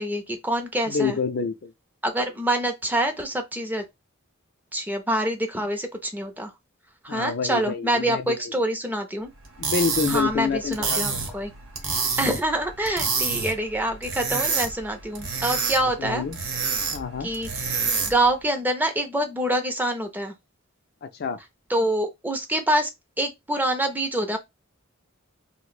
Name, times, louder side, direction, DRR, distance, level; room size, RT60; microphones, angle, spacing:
voice 1, 0.0-1.2 2.0-3.8 4.7-6.5 7.0-9.3 10.1-11.5 12.2-16.2 17.2-20.3 21.7-22.9 23.2-24.4, right 1 dB, 10° right, 0.5 m, -26 dB
voice 2, 0.9-1.7 7.1-8.4 9.6-11.4 15.8-16.4 16.9-17.3 21.0-21.4, left 5 dB, 50° left, 0.4 m, -28 dB
sound 1, 9.4-18.3, right 5 dB, 75° right, 0.9 m, -28 dB
2.5 x 2.1 x 3.9 m
head